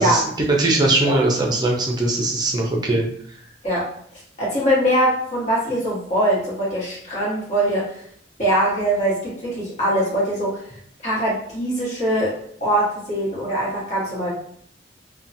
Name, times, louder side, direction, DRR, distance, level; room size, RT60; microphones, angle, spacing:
voice 1, 0.0-3.1, right 2 dB, 25° right, -1 dB, 0.5 m, -20 dB
voice 2, 4.4-8.0 8.4-10.6 11.0-14.3, right 1 dB, 40° left, -7 dB, 1.3 m, -22 dB
2.7 x 2.2 x 2.6 m, 0.62 s
head